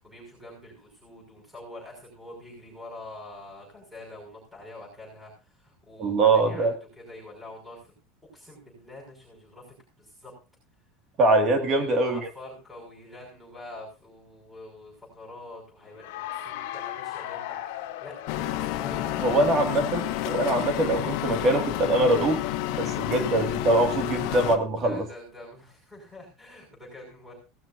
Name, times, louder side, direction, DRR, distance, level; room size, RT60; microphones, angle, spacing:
voice 1, 0.0-6.7 7.0-7.9 8.3-10.3 11.7-18.2 18.5-19.5 24.8-27.3, left 2 dB, ahead, -2 dB, 6.0 m, -45 dB
voice 2, 6.0-6.7 11.2-12.2 19.2-22.4 22.8-25.1, right 2 dB, 25° right, 6 dB, 2.1 m, -23 dB
Cheering / Applause, 15.9-21.1, left 13 dB, 80° left, 1.7 m, -39 dB
sound 1, 18.3-24.6, left 13 dB, 55° left, 1.5 m, -30 dB
18.0 x 12.5 x 2.7 m, 0.30 s
cardioid pair, 180°, 0 cm